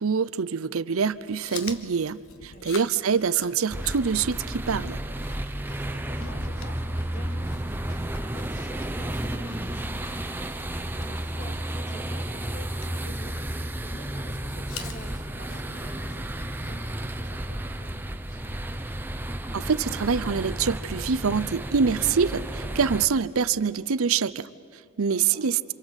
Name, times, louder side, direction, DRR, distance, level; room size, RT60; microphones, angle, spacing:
voice 1, 0.0-5.0 19.5-25.7, right 6 dB, 85° right, 15 dB, 0.7 m, -25 dB
Chewing mastication, 1.1-17.0, left 6 dB, 85° left, 1.5 m, -47 dB
voice 2, 2.5-2.8 6.0-18.6 25.1-25.5, left 1 dB, 35° left, 3 dB, 2.5 m, -48 dB
sound 1, 3.7-23.1, right 1 dB, 10° right, 0.8 m, -32 dB
27.5 x 26.5 x 8.1 m, 2.2 s
head